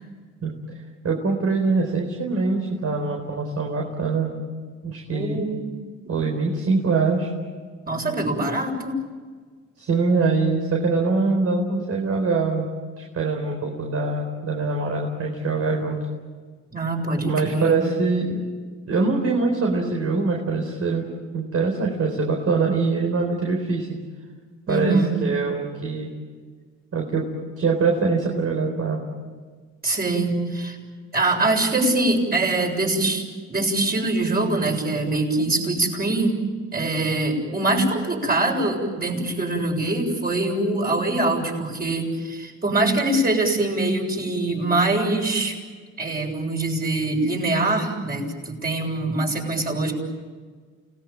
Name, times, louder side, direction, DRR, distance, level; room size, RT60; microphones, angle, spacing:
voice 1, 1.0-4.3 4.8-5.4 6.1-7.3 9.8-12.7 13.0-16.0 17.2-18.4 18.9-21.0 21.3-23.9 24.7-24.9 25.2-26.1 26.9-27.2 27.6-29.0, right 4 dB, 50° right, 1 dB, 4.5 m, -23 dB
voice 2, 5.1-5.7 6.0-6.1 7.9-9.0 16.7-17.9 24.7-25.2 29.8-30.8 31.1-36.4 36.7-45.6 46.0-49.9, right 2 dB, 30° right, 1 dB, 7.3 m, -23 dB
29.5 x 19.0 x 9.1 m, 1.5 s
cardioid pair, 90°, 30 cm